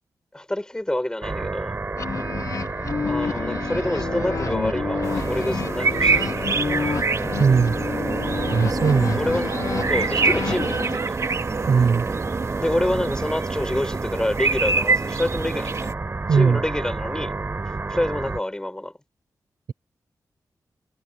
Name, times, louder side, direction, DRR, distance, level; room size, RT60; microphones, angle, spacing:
voice 1, 0.3-1.7 3.0-6.9 9.1-9.6 9.9-11.2 12.6-15.9 16.3-17.3 17.9-18.9, left 1 dB, 10° left, 6.4 m, -27 dB
sound 1, 1.2-18.4, right 3 dB, 30° right, 6.8 m, -30 dB
sound 2, 2.0-11.0, left 5 dB, 50° left, 0.8 m, -29 dB
sound 3, 5.0-15.9, right 4 dB, 50° right, 2.7 m, -26 dB
voice 2, 7.4-7.8 8.5-9.2 11.7-12.1 16.3-16.6, right 6 dB, 65° right, 0.8 m, -18 dB
wide cardioid pair, 145°, 7 cm